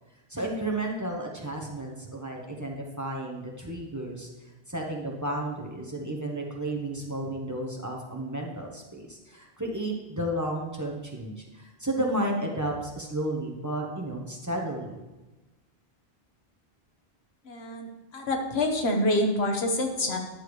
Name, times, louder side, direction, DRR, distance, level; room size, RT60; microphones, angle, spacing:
voice 1, 0.3-4.3 4.7-15.0, right 1 dB, 20° right, -1 dB, 1.0 m, -32 dB
voice 2, 17.4-17.9 18.1-20.2, left 1 dB, 85° left, 3 dB, 1.3 m, -26 dB
10.5 x 6.8 x 3.2 m, 1.1 s
omnidirectional pair, 1.0 m